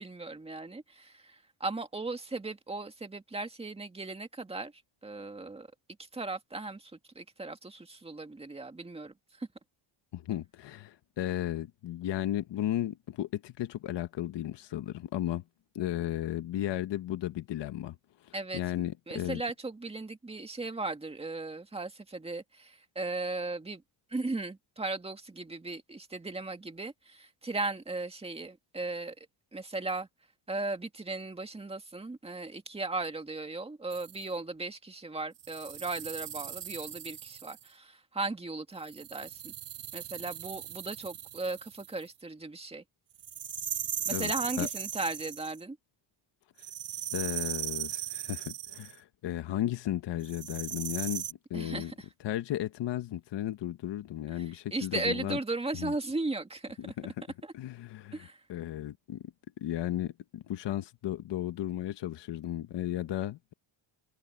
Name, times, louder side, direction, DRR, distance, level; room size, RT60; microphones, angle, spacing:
voice 1, 0.0-5.7 6.0-9.5 18.3-18.6 19.1-23.8 24.1-29.3 29.5-30.1 30.5-39.5 39.9-42.8 44.1-45.8 51.5-51.9 54.3-56.9 57.4-57.5 58.1-58.4, right 3 dB, 10° right, 2.1 m, -37 dB
voice 2, 10.1-15.4 15.7-18.0 18.2-19.4 44.1-44.3 44.6-44.7 47.1-51.9 52.2-55.4 55.8-55.9 56.8-57.1 57.5-58.2 58.5-63.5, left 13 dB, 60° left, 1.4 m, -34 dB
sound 1, 33.9-34.2 35.4-37.7 38.8-42.0 43.2-45.6 46.6-48.9 50.2-51.3, right 10 dB, 60° right, 5.3 m, -38 dB
cardioid pair, 145°, 48 cm